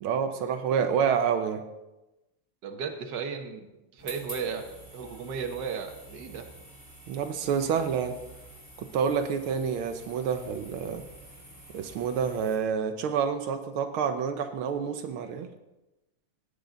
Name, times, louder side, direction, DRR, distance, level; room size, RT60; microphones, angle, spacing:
voice 1, 0.0-1.6 7.1-8.2 8.8-11.0 11.7-15.5, right 7 dB, 85° right, 7 dB, 1.7 m, -28 dB
voice 2, 2.6-3.6 3.9-4.6 4.9-6.5, right 6 dB, 60° right, 5 dB, 1.7 m, -34 dB
sound 1, 4.0-12.6, right 1 dB, 10° right, 4.2 m, -48 dB
18.5 x 8.8 x 3.9 m, 0.99 s
omnidirectional pair, 2.3 m